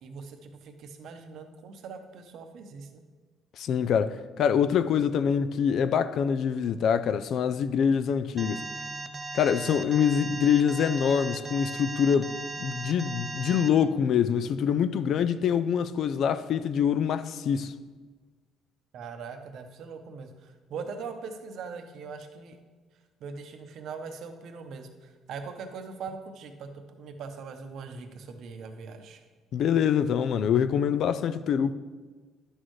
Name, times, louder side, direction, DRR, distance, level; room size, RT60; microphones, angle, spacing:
voice 1, 0.0-3.0 18.9-22.6 23.2-29.2, right 5 dB, 55° right, 0.8 m, -41 dB
voice 2, 3.6-8.7 9.3-17.7 29.5-31.7, left 7 dB, 55° left, 0.3 m, -25 dB
Alarm, 8.4-13.7, right 3 dB, 20° right, 0.4 m, -37 dB
10.5 x 6.4 x 3.1 m
cardioid pair, 165°, 0 cm